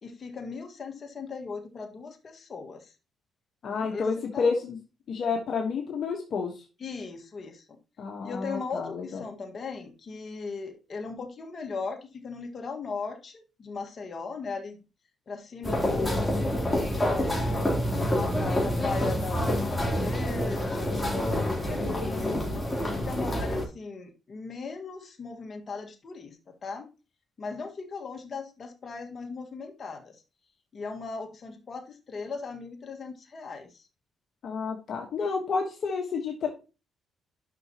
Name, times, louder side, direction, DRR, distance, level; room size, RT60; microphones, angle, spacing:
voice 1, 0.0-2.9 3.7-4.6 6.8-7.6 8.2-14.8 15.3-16.5 17.1-17.8 18.3-22.7 23.0-26.9 27.4-30.2 30.7-33.9, left 4 dB, 40° left, 3 dB, 1.7 m, -38 dB
voice 2, 3.6-4.8 5.1-6.6 8.0-9.2 22.0-22.6 34.4-36.5, left 5 dB, 60° left, 1 dB, 1.3 m, -30 dB
sound 1, 15.6-23.7, equal, 10° left, 3.3 m, -27 dB
10.5 x 6.0 x 3.0 m, 0.32 s
cardioid pair, 90°, 0 cm